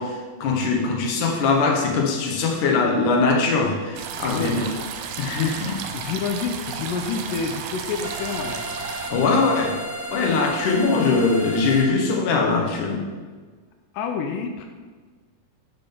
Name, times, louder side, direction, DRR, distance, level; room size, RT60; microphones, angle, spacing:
voice 1, 0.0-4.7 5.2-5.8 9.1-9.7 10.1-13.0, left 4 dB, 65° left, 1 dB, 2.4 m, -21 dB
sound 1, 4.0-9.1, right 7 dB, 85° right, 2.6 m, -33 dB
voice 2, 4.3-4.7 5.3-5.5 5.9-8.7 9.3-9.5 13.9-14.7, left 5 dB, 85° left, 4 dB, 1.9 m, -29 dB
sound 2, 8.0-11.9, right 1 dB, 10° right, 0.8 m, -33 dB
11.0 x 6.0 x 3.7 m, 1.5 s
omnidirectional pair, 4.4 m